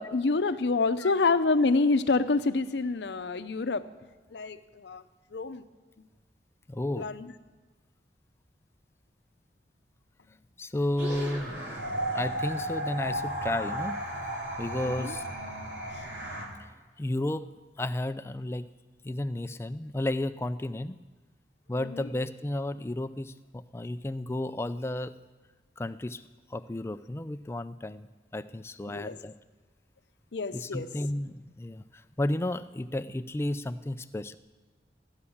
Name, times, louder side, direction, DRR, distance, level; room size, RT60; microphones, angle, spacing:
voice 1, 0.0-3.8 4.3-5.0 5.3-5.6 7.0-7.3 14.8-15.1 21.8-22.1 28.9-29.2 30.3-30.9, left 3 dB, 75° left, 12 dB, 0.6 m, -27 dB
voice 2, 6.7-7.1 10.6-11.7 12.1-14.0 14.6-15.2 17.0-17.5 17.8-18.7 19.0-21.0 21.7-25.1 25.8-26.2 26.5-28.1 28.3-29.3 30.5-34.3, left 1 dB, 15° left, 12 dB, 0.3 m, -32 dB
sound 1, 11.0-16.5, right 1 dB, 80° right, 2.5 m, -34 dB
14.5 x 9.7 x 7.1 m, 1.3 s
head